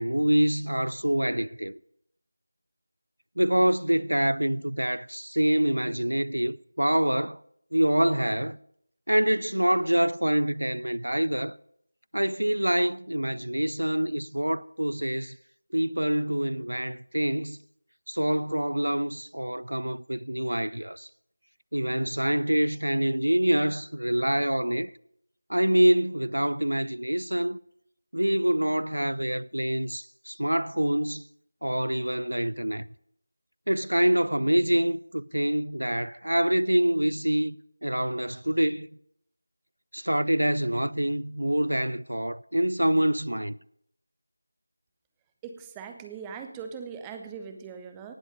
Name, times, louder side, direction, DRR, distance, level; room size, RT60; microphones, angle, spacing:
voice 1, 0.0-1.8 3.4-7.4 7.7-8.6 9.1-11.6 12.1-15.4 15.7-17.6 18.1-21.1 21.7-24.9 25.5-27.6 28.1-31.2 31.6-32.9 33.7-37.6 37.8-38.9 39.9-43.6, right 1 dB, 75° right, 0.4 m, -26 dB
voice 2, 45.4-48.1, right 6 dB, 10° right, 0.7 m, -40 dB
18.5 x 7.4 x 5.1 m
figure-of-eight pair, 165°, 0 cm